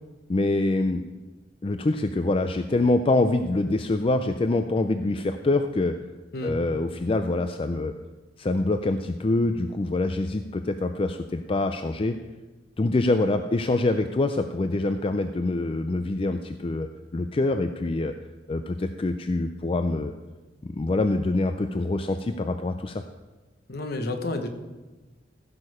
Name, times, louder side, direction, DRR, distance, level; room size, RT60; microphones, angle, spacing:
voice 1, 0.3-1.0 1.6-6.0 6.4-7.9 8.4-12.2 12.8-18.1 18.5-20.1 20.6-23.0, left 2 dB, 30° left, 8 dB, 0.4 m, -25 dB
voice 2, 23.7-24.5, left 2 dB, 60° left, 6 dB, 1.2 m, -30 dB
15.0 x 6.5 x 4.9 m, 1.2 s
head